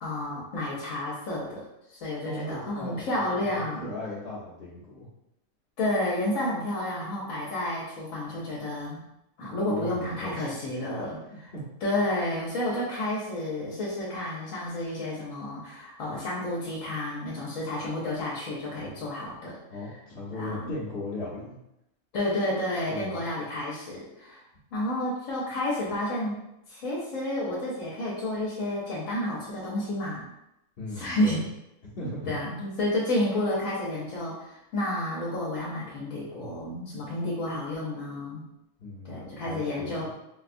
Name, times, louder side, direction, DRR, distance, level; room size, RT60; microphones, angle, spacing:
voice 1, 0.0-3.9 5.8-9.0 9.4-11.5 11.8-19.6 20.3-20.7 22.1-24.4 24.7-26.4 26.7-30.2 30.9-31.4 32.3-38.4 39.0-40.2, left 1 dB, 70° left, -6 dB, 1.1 m, -31 dB
voice 2, 2.2-5.1 9.7-10.7 11.0-11.1 11.5-11.6 18.8-19.0 19.7-21.5 22.9-23.2 30.8-31.3 31.8-32.4 38.8-40.1, left 2 dB, 50° left, -9 dB, 0.9 m, -38 dB
4.0 x 2.3 x 2.5 m, 0.86 s
omnidirectional pair, 1.5 m